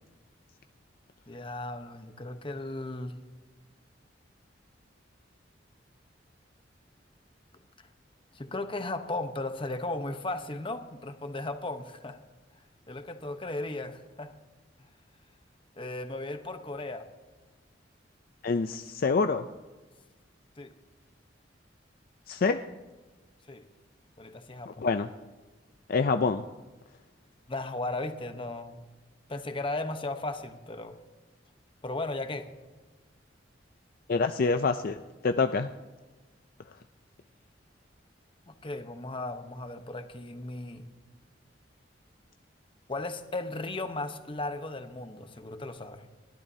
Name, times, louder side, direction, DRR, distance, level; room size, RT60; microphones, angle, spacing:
voice 1, 1.3-3.1 8.3-12.2 12.9-14.3 15.8-17.1 20.6-20.7 23.5-23.6 24.2-24.8 27.5-28.8 29.3-31.0 31.8-32.5 38.5-40.8 42.9-46.0, left 2 dB, 30° left, 8 dB, 1.0 m, -36 dB
voice 2, 18.4-19.4 22.3-22.6 24.7-25.1 25.9-26.4 34.1-35.0 35.2-35.7, left 4 dB, 50° left, 8 dB, 0.4 m, -26 dB
30.0 x 12.0 x 2.8 m, 1.3 s
head